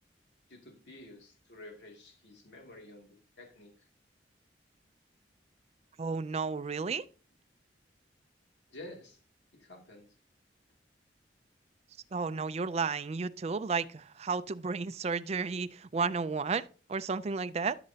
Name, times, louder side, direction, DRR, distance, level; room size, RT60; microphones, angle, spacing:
voice 1, 0.5-3.9 8.7-9.2 9.5-10.1, left 1 dB, 80° left, 2.5 m, -50 dB
voice 2, 6.0-7.1 12.1-17.8, right 4 dB, 35° right, 0.4 m, -33 dB
13.5 x 6.8 x 2.8 m
head